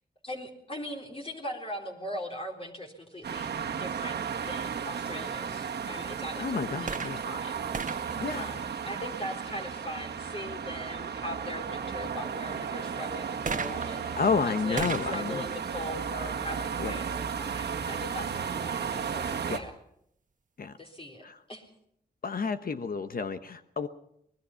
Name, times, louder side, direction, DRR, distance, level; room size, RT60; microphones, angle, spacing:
voice 1, 0.2-3.5 3.8-19.7 20.8-21.7, equal, 35° left, 1 dB, 3.8 m, -40 dB
sound 1, 3.2-19.6, right 6 dB, 80° right, 1.9 m, -34 dB
voice 2, 6.4-7.2 8.2-8.5 14.2-15.5 16.8-17.0 19.5-19.6 20.6-20.7 21.2-21.4 22.2-23.9, left 5 dB, 60° left, 10 dB, 1.1 m, -30 dB
sound 2, 6.9-9.4 13.5-17.1 17.9-18.0, right 5 dB, 50° right, 1.4 m, -39 dB
24.5 x 19.5 x 5.8 m, 0.74 s
cardioid pair, 65°, 17 cm